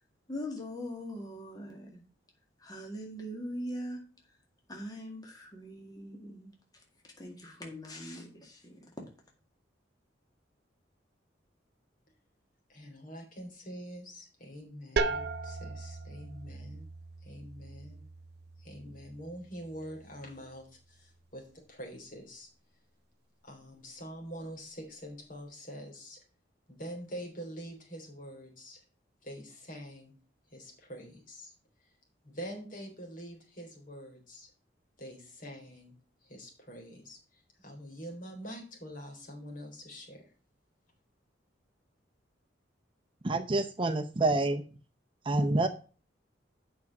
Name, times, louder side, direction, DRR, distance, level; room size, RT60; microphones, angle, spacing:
voice 1, 0.3-2.0 2.6-4.0 4.7-6.8 7.2-8.9, equal, 20° left, 2.0 m, -41 dB
voice 2, 12.7-16.9 17.2-18.0 18.6-22.5 23.4-26.2 26.7-28.8 29.2-30.1 30.5-31.5 32.2-34.5 35.0-36.0 36.2-40.2, equal, 45° left, 3.9 m, -45 dB
sound 1, 15.0-20.5, right 3 dB, 60° right, 0.7 m, -38 dB
voice 3, 43.2-44.6 45.3-45.7, right 2 dB, 30° right, 0.6 m, -27 dB
8.4 x 5.9 x 6.0 m
head